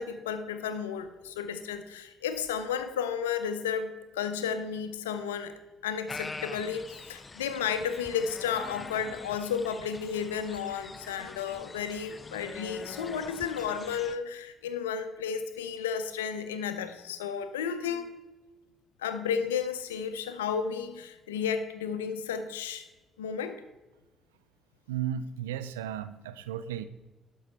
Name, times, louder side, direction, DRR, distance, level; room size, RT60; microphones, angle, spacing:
voice 1, 0.0-5.5 5.8-18.1 19.0-22.9 23.2-23.6, left 7 dB, 85° left, 10 dB, 0.6 m, -33 dB
sound 1, 6.1-14.2, left 3 dB, 30° left, 0.5 m, -44 dB
voice 2, 24.9-26.9, right 10 dB, 85° right, 12 dB, 0.5 m, -34 dB
12.0 x 5.5 x 4.5 m, 1.1 s
hypercardioid pair, 50°, 0 cm